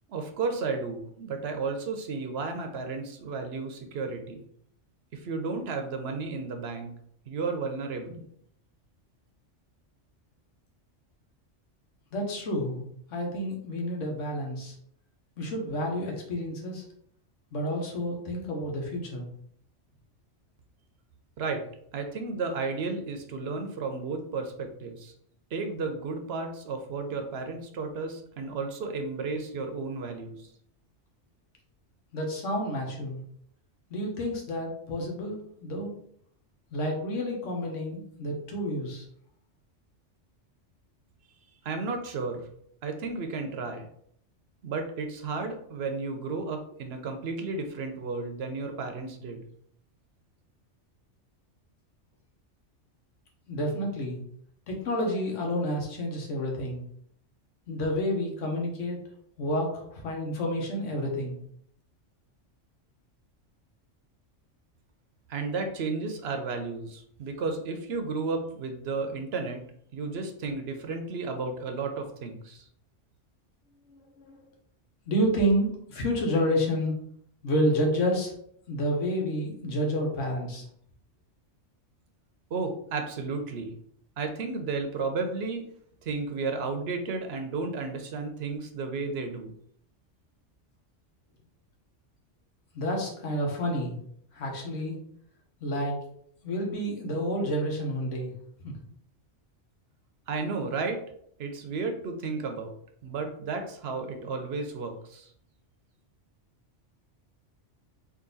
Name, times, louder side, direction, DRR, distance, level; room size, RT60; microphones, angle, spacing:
voice 1, 0.1-4.4 5.1-6.9 7.3-8.2 21.4-21.6 21.9-25.1 25.5-30.5 41.6-42.5 42.8-43.9 44.6-49.4 65.3-69.6 69.9-72.6 82.5-83.8 84.2-85.7 86.0-89.5 100.3-101.0 101.4-102.7 103.0-105.3, right 4 dB, 60° right, 5 dB, 0.9 m, -33 dB
voice 2, 12.1-12.8 13.1-14.7 15.4-16.8 17.5-19.3 32.1-33.2 33.9-35.9 36.7-39.0 53.5-54.2 54.7-56.8 57.7-59.0 59.4-61.4 73.9-74.4 75.0-76.9 77.4-78.3 78.7-80.6 92.7-94.0 94.3-95.0 95.6-96.0 96.4-98.3 98.6-98.7, equal, 85° left, 0 dB, 1.3 m, -29 dB
3.8 x 2.6 x 3.9 m, 0.68 s
omnidirectional pair, 1.2 m